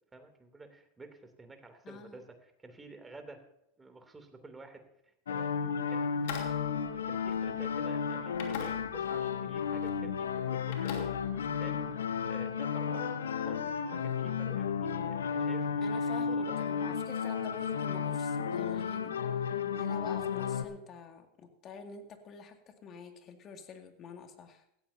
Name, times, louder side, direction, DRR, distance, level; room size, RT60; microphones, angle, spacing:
voice 1, 0.1-3.4 3.8-4.8 5.3-5.5 5.9-6.0 6.9-11.1 11.6-11.8 12.2-15.7 16.2-16.7 19.9-20.1, right 3 dB, 15° right, 6 dB, 2.8 m, -50 dB
voice 2, 1.8-2.2 15.8-19.1 19.7-24.6, left 5 dB, 40° left, 5 dB, 2.2 m, -47 dB
sound 1, 5.3-20.7, left 6 dB, 85° left, 1.0 m, -33 dB
sound 2, 6.2-7.9 8.3-9.3 9.5-10.0 10.3-11.9, left 7 dB, 70° left, 2.8 m, -44 dB
16.5 x 14.0 x 2.7 m, 0.81 s
hypercardioid pair, 95°, 0 cm